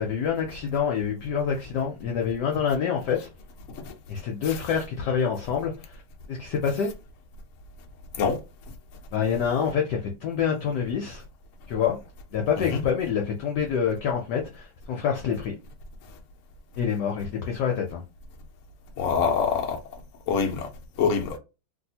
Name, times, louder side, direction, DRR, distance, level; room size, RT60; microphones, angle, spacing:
voice 1, 0.0-3.3 4.1-6.0 6.3-6.9 9.1-11.2 11.7-12.0 12.3-15.5 16.8-18.0, left 7 dB, 70° left, 1.0 m, -26 dB
voice 2, 19.0-19.8 20.3-20.7 21.0-21.4, left 6 dB, 85° left, 0.6 m, -24 dB
3.2 x 2.7 x 2.7 m
omnidirectional pair, 2.3 m